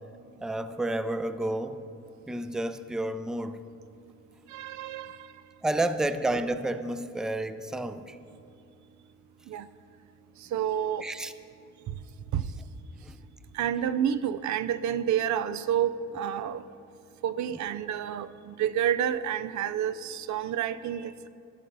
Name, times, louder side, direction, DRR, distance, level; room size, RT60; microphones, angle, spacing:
voice 1, 0.4-1.8 2.3-3.6 5.6-8.2 11.0-11.3 13.0-13.2, right 1 dB, ahead, 11 dB, 0.5 m, -30 dB
voice 2, 4.5-5.1 9.5-9.6 10.5-11.0 12.3-12.4 13.6-16.6 17.2-18.3 18.6-21.3, right 9 dB, 70° right, 14 dB, 0.5 m, -29 dB
13.0 x 10.0 x 5.4 m, 2.5 s
cardioid pair, 90°, 30 cm